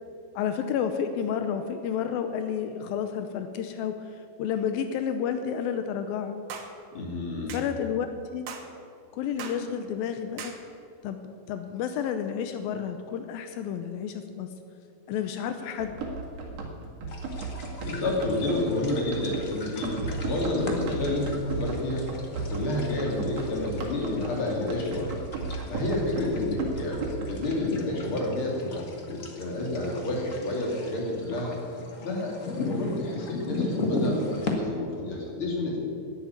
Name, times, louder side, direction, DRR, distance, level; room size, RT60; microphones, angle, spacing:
voice 1, 0.4-6.3 7.5-8.5 9.1-10.5 11.0-14.5 15.1-16.0, left 8 dB, 85° left, 8 dB, 2.6 m, -31 dB
sound 1, 6.5-6.7 7.5-7.7 8.5-8.7 9.4-9.6 10.4-10.6, right 6 dB, 90° right, 3.1 m, -39 dB
voice 2, 6.9-7.6 17.8-22.1 22.5-25.1 25.7-31.5 32.0-35.8, left 2 dB, 40° left, -2 dB, 3.4 m, -30 dB
Run, 15.8-27.5, right 3 dB, 50° right, 2.7 m, -35 dB
sound 2, 17.1-34.5, left 2 dB, 65° left, 0.8 m, -37 dB
11.0 x 11.0 x 8.9 m, 2.5 s
omnidirectional pair, 4.1 m